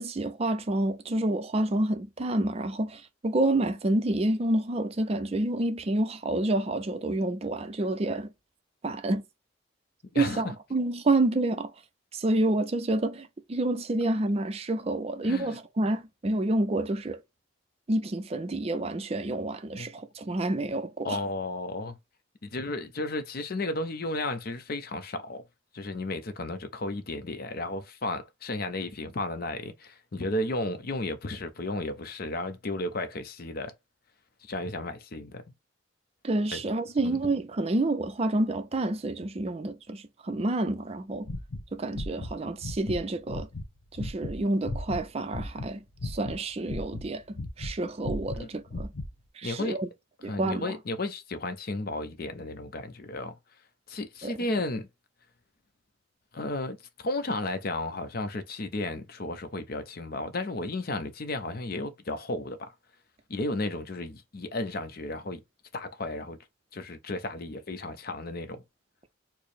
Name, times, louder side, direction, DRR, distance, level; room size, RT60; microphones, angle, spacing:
voice 1, 0.0-8.3 8.8-9.2 10.1-11.7 12.1-17.2 17.9-21.2 36.2-41.3 41.7-43.5 43.9-48.9 49.3-49.9 50.2-50.7 54.2-54.3, right 2 dB, 30° right, 0.4 m, -28 dB
voice 2, 15.2-15.6 19.8-19.9 21.0-22.0 22.4-25.4 25.7-33.7 34.4-35.4 36.5-36.6 37.0-37.2 48.3-48.5 49.4-49.8 50.3-53.4 53.9-54.9 56.3-62.7 63.3-65.4 65.7-66.4 66.7-68.6, left 2 dB, 50° left, 0.6 m, -33 dB
sound 1, 41.2-42.3 42.6-43.0 43.3-45.7 46.0-47.7 48.0-49.1, left 1 dB, 70° left, 1.0 m, -35 dB
4.4 x 2.0 x 3.3 m
head